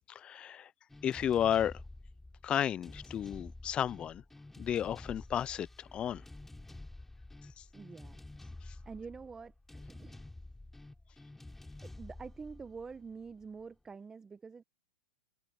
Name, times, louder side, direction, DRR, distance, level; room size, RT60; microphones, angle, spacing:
voice 1, 0.1-0.7 1.0-1.8 2.4-4.2 4.6-6.2 7.6-7.7 8.7-8.8, left 10 dB, 25° left, 0.4 m, -33 dB
sound 1, 0.9-13.6, left 2 dB, 5° left, 3.3 m, -50 dB
voice 2, 7.7-8.2 8.8-10.2 11.8-14.6, right 5 dB, 15° right, 1.0 m, -47 dB
hypercardioid pair, 125°, 4 cm